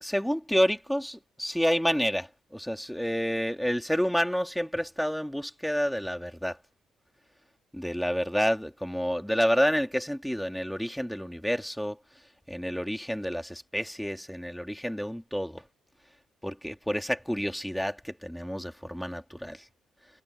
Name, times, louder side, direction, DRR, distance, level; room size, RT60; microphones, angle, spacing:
voice 1, 0.0-6.6 7.7-12.0 12.5-15.6 16.4-19.6, equal, ahead, 2.5 m, -29 dB
cardioid pair, 90°, 0 cm